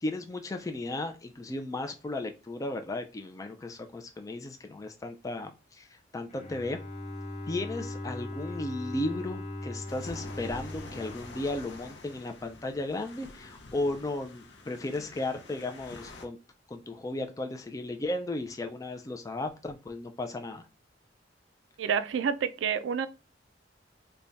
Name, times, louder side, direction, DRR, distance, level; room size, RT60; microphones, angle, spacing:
voice 1, 0.0-6.8 7.5-16.4 16.7-20.6, left 2 dB, 20° left, 0.3 m, -35 dB
Bowed string instrument, 6.3-12.2, left 1 dB, 40° left, 0.8 m, -40 dB
sound 1, 9.9-16.3, left 2 dB, 65° left, 0.6 m, -47 dB
voice 2, 21.8-23.1, right 7 dB, 85° right, 0.3 m, -28 dB
3.4 x 2.2 x 3.9 m
head